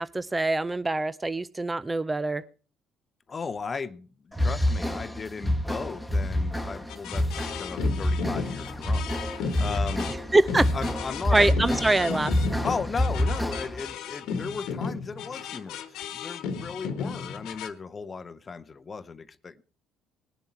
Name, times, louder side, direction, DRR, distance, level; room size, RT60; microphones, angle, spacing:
voice 1, 0.0-2.4 10.3-10.7 11.3-12.3, right 2 dB, 15° right, 0.5 m, -24 dB
voice 2, 3.3-10.1 10.7-11.6 12.6-19.6, left 5 dB, 30° left, 0.7 m, -36 dB
sound 1, 4.3-13.9, left 1 dB, ahead, 1.3 m, -28 dB
sound 2, 6.9-17.7, left 6 dB, 75° left, 1.3 m, -35 dB
20.0 x 7.1 x 4.5 m
cardioid pair, 90°, 0 cm